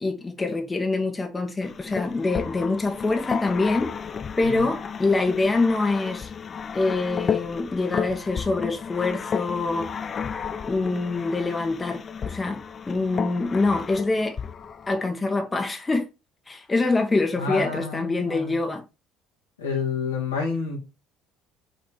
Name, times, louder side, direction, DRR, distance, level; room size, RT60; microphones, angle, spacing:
voice 1, 0.0-3.9 4.4-6.3 6.7-9.9 10.6-12.6 12.9-14.4 14.9-16.1 16.5-18.8, left 3 dB, 20° left, 1.4 m, -25 dB
sound 1, 1.6-15.0, left 7 dB, 35° left, 0.6 m, -33 dB
voice 2, 17.4-18.6 19.6-20.8, left 5 dB, 80° left, 2.1 m, -29 dB
6.2 x 4.2 x 4.5 m
figure-of-eight pair, 55°, 0 cm